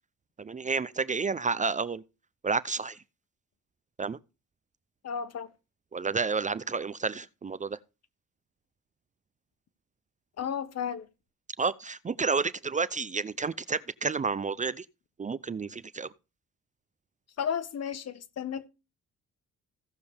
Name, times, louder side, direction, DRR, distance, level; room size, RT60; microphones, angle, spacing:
voice 1, 0.4-2.0 2.4-3.0 4.0-4.2 5.9-7.8 11.6-14.9 15.2-16.1, right 4 dB, 25° right, 0.5 m, -30 dB
voice 2, 5.0-5.5 10.4-11.1 17.4-18.7, left 7 dB, 55° left, 1.3 m, -33 dB
16.5 x 6.8 x 3.4 m
cardioid pair, 90°, 30 cm